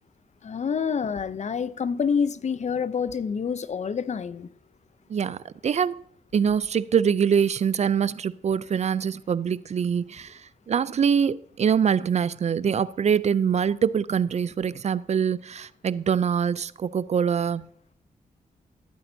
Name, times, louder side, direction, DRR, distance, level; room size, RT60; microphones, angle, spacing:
voice 1, 0.4-4.5, left 6 dB, 50° left, 0.6 m, -27 dB
voice 2, 5.1-6.0 6.3-17.7, right 7 dB, 50° right, 0.4 m, -24 dB
15.0 x 8.6 x 2.7 m
cardioid pair, 65°, 15 cm